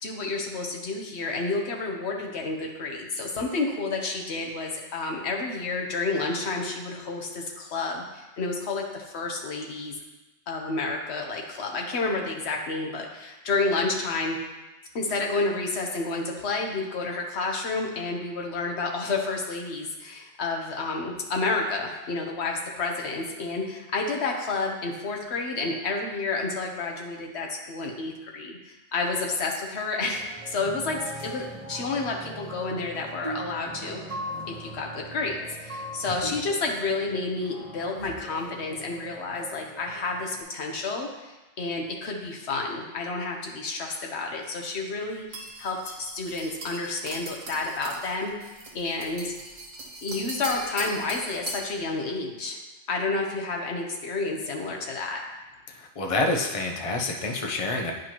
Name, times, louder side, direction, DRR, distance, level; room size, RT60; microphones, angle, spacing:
voice 1, 0.0-9.9 10.5-14.4 14.9-34.2 34.5-35.4 35.6-48.3 48.7-49.4 50.0-52.6 52.9-55.2, left 3 dB, 60° left, 1 dB, 1.2 m, -30 dB
sound 1, 30.1-40.4, right 1 dB, 35° right, 0.8 m, -40 dB
sound 2, 45.3-51.8, right 2 dB, 85° right, 1.4 m, -40 dB
voice 2, 55.7-57.9, left 2 dB, 35° left, 1 dB, 0.7 m, -28 dB
9.5 x 5.1 x 3.0 m, 1.1 s
omnidirectional pair, 1.3 m